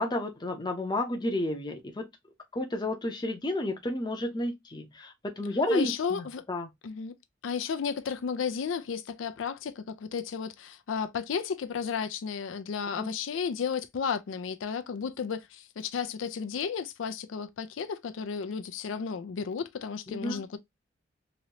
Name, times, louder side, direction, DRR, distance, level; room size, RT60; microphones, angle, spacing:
voice 1, 0.0-2.1 2.5-6.7 13.0-13.1 20.1-20.4, left 1 dB, 25° left, 0.6 m, -31 dB
voice 2, 5.7-6.4 6.8-7.1 7.4-20.6, left 6 dB, 90° left, 0.4 m, -33 dB
3.0 x 2.7 x 2.8 m
head